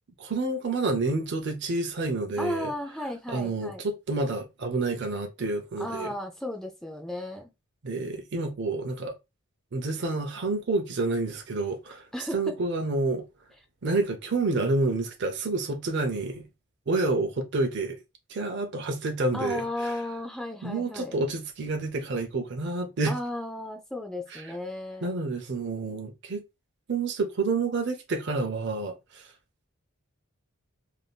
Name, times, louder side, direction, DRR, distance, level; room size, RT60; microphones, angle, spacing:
voice 1, 0.2-2.7 3.3-6.1 7.8-9.2 9.7-12.1 12.3-13.2 13.8-16.4 16.9-18.0 18.3-20.0 20.6-23.1 24.3-24.4 25.0-26.4 26.9-29.3, right 3 dB, 50° right, 0.5 m, -29 dB
voice 2, 2.4-3.8 5.8-7.5 12.1-12.6 19.3-21.2 23.1-25.1, left 1 dB, ahead, 0.4 m, -34 dB
3.4 x 2.6 x 2.3 m
head